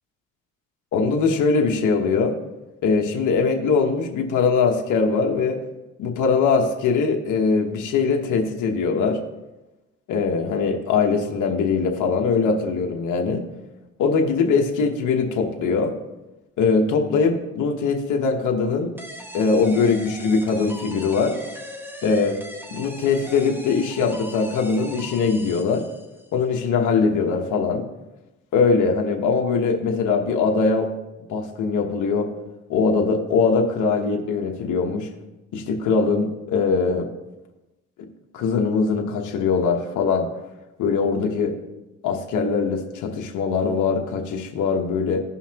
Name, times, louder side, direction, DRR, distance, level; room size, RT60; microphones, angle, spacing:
voice 1, 0.9-2.4 2.8-5.6 6.0-9.2 10.1-13.4 14.0-15.9 16.6-18.9 19.3-21.3 22.0-22.4 22.7-25.8 26.3-27.8 28.5-30.9 31.3-32.3 32.7-35.1 35.5-37.1 38.3-40.3 40.8-41.5 42.0-45.2, left 4 dB, 80° left, 1 dB, 1.2 m, -21 dB
sound 1, 19.0-26.3, equal, 5° right, 1.1 m, -40 dB
16.0 x 5.7 x 2.9 m, 1.0 s
cardioid pair, 90°, 30 cm